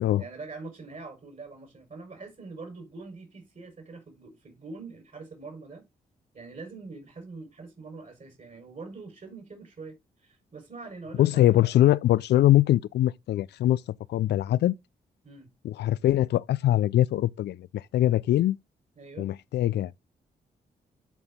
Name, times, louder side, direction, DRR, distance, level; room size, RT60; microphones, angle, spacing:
voice 1, 0.2-5.9 6.3-11.7 15.2-15.5 19.0-19.3, right 3 dB, 50° right, 4.7 m, -44 dB
voice 2, 11.2-13.8 14.1-14.7 15.6-18.6 19.2-19.9, left 13 dB, 75° left, 0.4 m, -22 dB
13.0 x 4.4 x 3.6 m
supercardioid pair, 50°, 17 cm